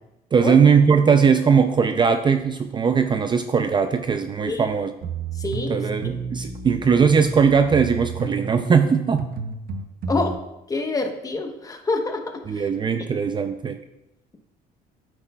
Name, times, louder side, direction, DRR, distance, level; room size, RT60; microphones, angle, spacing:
voice 1, 0.3-4.9 5.7-9.3 12.5-13.8, right 6 dB, 25° right, 8 dB, 0.4 m, -19 dB
sound 1, 5.0-10.3, right 4 dB, 60° right, 0.8 m, -31 dB
voice 2, 5.3-5.9 10.1-10.4 10.7-12.7, left 3 dB, 20° left, 5 dB, 0.9 m, -27 dB
8.8 x 8.3 x 2.3 m, 0.90 s
cardioid pair, 110°, 17 cm